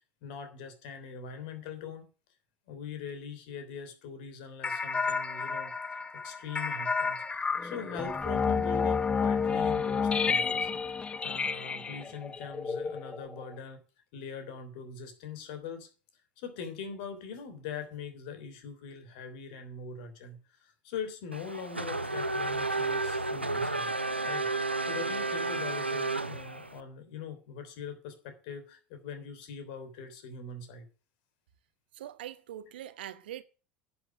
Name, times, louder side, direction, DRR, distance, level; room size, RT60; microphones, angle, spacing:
voice 1, 0.2-2.1 2.7-10.7 11.2-13.8 14.1-15.9 16.4-23.9 24.2-30.9, left 6 dB, 60° left, 3.2 m, -42 dB
sound 1, 4.6-13.5, left 5 dB, 20° left, 0.9 m, -30 dB
Race car auto racing / Accelerating revving vroom, 21.3-26.8, right 3 dB, 90° right, 0.7 m, -32 dB
voice 2, 31.9-33.4, right 11 dB, 65° right, 1.0 m, -42 dB
11.0 x 7.2 x 7.9 m
figure-of-eight pair, 75°, 6 cm